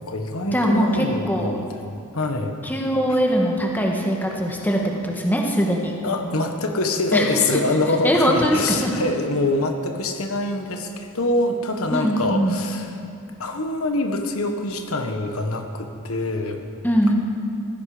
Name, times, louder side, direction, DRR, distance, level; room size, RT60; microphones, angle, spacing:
voice 1, 0.0-1.9 2.1-2.6 3.1-3.2 6.0-12.9 13.4-16.6, left 2 dB, 70° left, 4 dB, 1.4 m, -25 dB
voice 2, 0.5-1.6 2.6-6.0 7.1-7.6 7.9-8.9 11.9-12.5 16.8-17.1, equal, 10° left, 0 dB, 1.8 m, -21 dB
17.5 x 16.0 x 5.1 m, 2.5 s
head